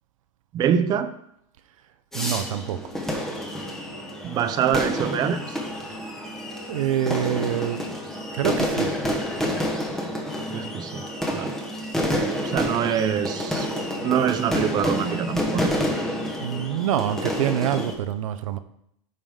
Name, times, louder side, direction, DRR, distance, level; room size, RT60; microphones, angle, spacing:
voice 1, 0.5-1.1 4.2-5.6 10.5-11.0 11.3-11.6 12.4-13.7 14.0-15.7, right 8 dB, 25° right, 12 dB, 0.5 m, -24 dB
sound 1, 2.1-17.9, equal, ahead, 1.2 m, -29 dB
voice 2, 2.1-2.8 6.7-7.8 8.3-8.9 16.4-18.6, right 10 dB, 85° right, 12 dB, 0.8 m, -26 dB
14.0 x 5.2 x 3.7 m, 0.76 s
supercardioid pair, 155°, 17 cm